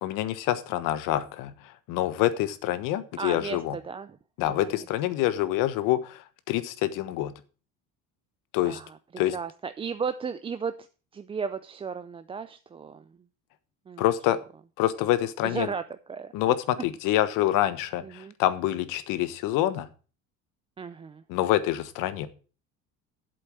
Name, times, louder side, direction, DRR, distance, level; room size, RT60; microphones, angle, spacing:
voice 1, 0.0-1.5 1.9-3.8 4.4-7.3 8.5-8.8 9.2-9.4 14.0-14.4 14.8-15.7 16.3-19.9 21.3-22.3, left 13 dB, 75° left, 13 dB, 1.3 m, -26 dB
voice 2, 3.2-4.2 4.4-4.8 8.6-9.0 9.3-10.7 11.1-13.0 13.9-14.0 15.4-15.8 16.1-16.3 18.0-18.3 20.8-21.2, right 6 dB, 15° right, 11 dB, 0.4 m, -34 dB
8.0 x 7.8 x 7.4 m, 0.37 s
cardioid pair, 140°, 33 cm